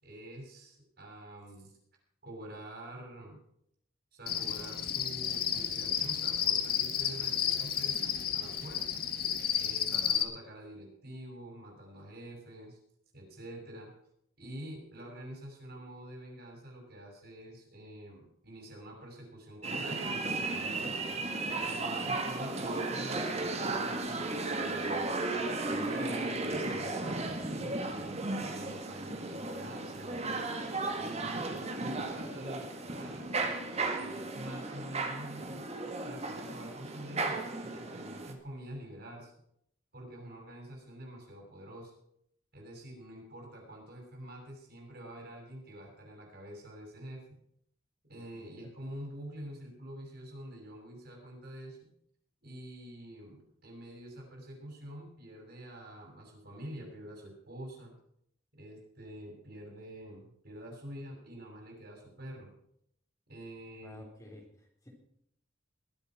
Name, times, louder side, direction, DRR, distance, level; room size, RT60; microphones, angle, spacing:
voice 1, 0.0-1.7 2.2-3.4 4.1-9.0 9.6-12.8 13.1-13.9 14.4-21.0 21.6-25.2 25.7-30.6 31.0-35.7 36.0-39.3 39.9-41.9 42.5-47.4 48.1-51.9 52.4-57.9 58.5-62.5 63.3-64.0, right 1 dB, 55° right, 1 dB, 6.9 m, -47 dB
Cricket, 4.3-10.2, left 8 dB, 50° left, 1.7 m, -32 dB
sound 1, 19.6-38.3, right 2 dB, 35° right, 2.1 m, -35 dB
voice 2, 63.8-64.9, left 1 dB, 15° left, -1 dB, 4.0 m, -52 dB
21.5 x 8.3 x 6.0 m, 0.71 s
head